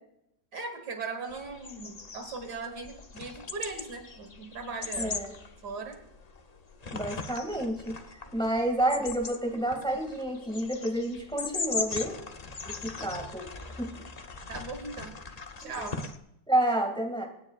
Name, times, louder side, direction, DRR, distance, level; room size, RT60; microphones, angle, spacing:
voice 1, 0.5-5.2 5.6-6.0 14.5-15.2 15.6-16.0, right 4 dB, 65° right, 6 dB, 2.1 m, -38 dB
sound 1, 1.3-16.2, left 4 dB, 70° left, 0.3 m, -40 dB
voice 2, 5.0-5.3 6.9-12.1 12.7-13.5 13.8-13.9 15.6-15.9 16.5-17.3, right 1 dB, 5° left, 2 dB, 1.9 m, -30 dB
24.0 x 9.8 x 2.4 m, 0.79 s
omnidirectional pair, 1.9 m